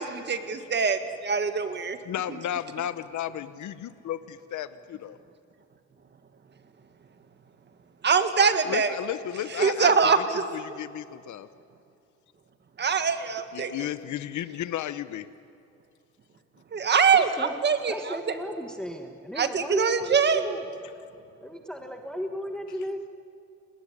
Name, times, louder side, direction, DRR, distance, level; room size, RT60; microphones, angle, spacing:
voice 1, 0.0-2.0 8.0-8.9 9.6-10.4 12.8-13.9 16.7-17.9 19.4-20.6, right 5 dB, 35° right, 8 dB, 1.7 m, -23 dB
voice 2, 2.0-5.2 8.6-9.9 10.5-11.5 13.5-15.3, left 11 dB, 80° left, 13 dB, 1.0 m, -33 dB
voice 3, 17.1-17.5 17.9-20.6 21.4-23.1, equal, 5° left, 3 dB, 1.3 m, -35 dB
29.5 x 20.5 x 10.0 m, 2.5 s
wide cardioid pair, 175°, 29 cm